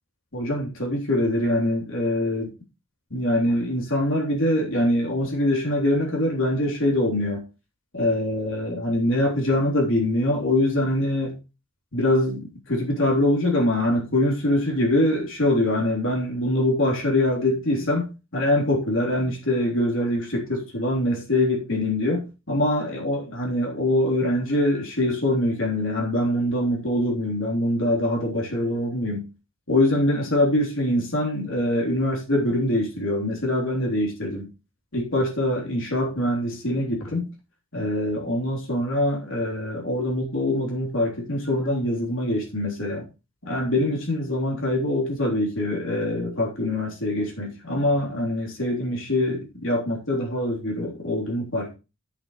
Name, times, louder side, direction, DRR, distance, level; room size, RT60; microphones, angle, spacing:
voice 1, 0.3-2.5 3.1-7.4 7.9-11.4 11.9-29.3 29.7-34.4 34.9-37.3 37.7-43.0 43.4-51.8, left 1 dB, 60° left, 3.6 m, -24 dB
14.0 x 7.2 x 3.2 m
head